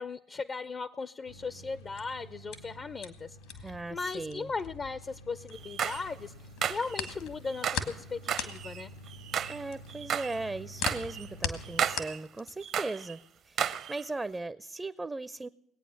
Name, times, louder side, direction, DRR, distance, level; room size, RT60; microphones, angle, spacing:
voice 1, 0.0-6.3 6.7-8.9, left 4 dB, 40° left, 16 dB, 0.5 m, -37 dB
sound 1, 1.3-12.0, equal, 90° left, 1.0 m, -50 dB
sound 2, 1.8-5.9 6.2-12.8, left 8 dB, 75° left, 1.6 m, -39 dB
voice 2, 3.6-4.5 9.5-13.2 13.4-15.5, right 2 dB, 20° right, 16 dB, 0.4 m, -38 dB
sound 3, 5.5-6.1 6.6-7.1 7.5-7.9 8.3-9.6 9.9-10.4 10.8-11.3 11.6-12.2 12.6-13.2 13.6-14.0, right 8 dB, 55° right, 0.7 m, -33 dB
20.0 x 9.0 x 6.3 m, 0.83 s
hypercardioid pair, 60°, 0 cm